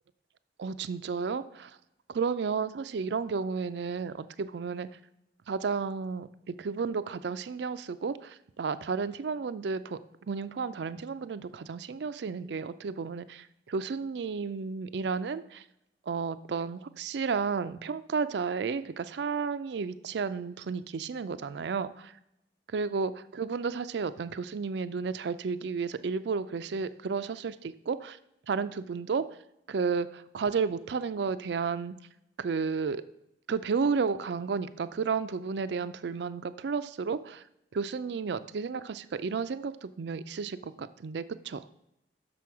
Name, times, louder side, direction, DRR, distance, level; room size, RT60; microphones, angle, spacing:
voice 1, 0.6-1.7 2.1-4.9 5.5-10.0 10.3-15.6 16.1-22.1 22.7-28.2 28.5-29.2 29.7-31.9 32.4-33.0 33.5-37.4 37.7-41.7, right 5 dB, 65° right, 13 dB, 0.4 m, -32 dB
6.2 x 6.0 x 4.7 m, 0.81 s
head